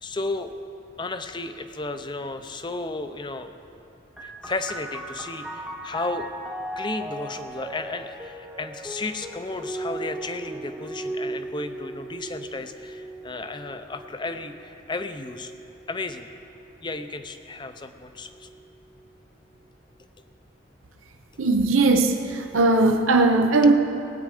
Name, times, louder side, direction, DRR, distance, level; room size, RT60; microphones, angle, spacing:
voice 1, 0.0-0.6 1.0-3.5 4.2-6.3 6.8-15.5 15.9-16.3 16.8-18.5 23.6-23.7, left 3 dB, 25° left, 9 dB, 0.5 m, -33 dB
sound 1, 4.2-17.4 18.3-19.0, right 1 dB, 5° right, 0.8 m, -37 dB
voice 2, 21.4-23.7, right 3 dB, 85° right, 4 dB, 0.7 m, -19 dB
19.5 x 8.6 x 5.0 m, 2.8 s
head